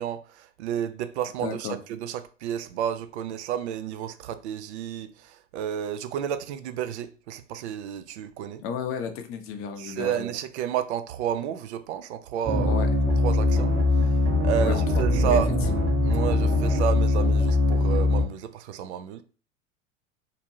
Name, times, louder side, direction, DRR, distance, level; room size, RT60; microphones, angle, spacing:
voice 1, 0.0-8.6 9.8-12.8 13.2-13.7 14.0-14.1 14.4-15.5 16.0-19.2, right 9 dB, 60° right, 0.5 m, -31 dB
voice 2, 1.4-1.8 8.6-10.3 12.7-12.9 14.6-15.4 15.7-15.8, left 7 dB, 35° left, 0.6 m, -33 dB
sound 1, 12.4-18.2, left 2 dB, 40° right, 1.0 m, -22 dB
2.9 x 2.5 x 2.6 m
figure-of-eight pair, 80°, 39 cm